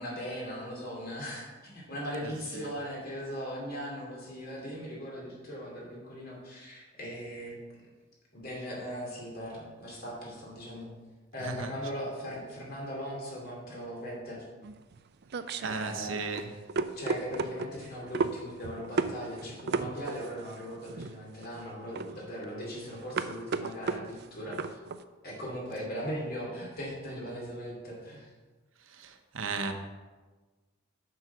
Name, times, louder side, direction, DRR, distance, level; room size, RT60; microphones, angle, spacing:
voice 1, 0.0-7.6 8.3-10.9 11.3-14.4 15.6-16.3 17.0-24.8 25.2-28.3, equal, 50° left, -3 dB, 3.0 m, -39 dB
voice 2, 2.2-2.7 11.4-11.7 15.6-16.5 28.9-29.7, right 4 dB, 75° right, 6 dB, 0.9 m, -36 dB
sound 1, 14.6-25.0, right 4 dB, 55° right, 0.4 m, -35 dB
7.8 x 6.1 x 5.8 m, 1.3 s
head